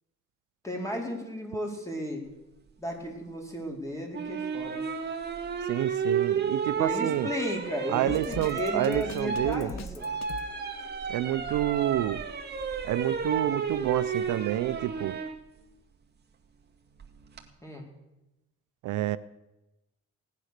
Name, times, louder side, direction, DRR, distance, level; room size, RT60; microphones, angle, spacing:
voice 1, 0.6-2.3 2.8-4.8 6.8-10.1 17.6-17.8, equal, 10° left, 1 dB, 4.2 m, -34 dB
sound 1, 4.1-15.3 17.0-17.4, right 6 dB, 35° right, 2.1 m, -32 dB
voice 2, 5.7-7.3 7.9-9.7 11.1-12.2 12.8-15.2 18.8-19.2, right 13 dB, 80° right, 14 dB, 0.6 m, -28 dB
Drum kit, 8.1-10.5, left 6 dB, 60° left, 1.5 m, -40 dB
17.5 x 9.6 x 6.6 m, 0.96 s
cardioid pair, 90°, 30 cm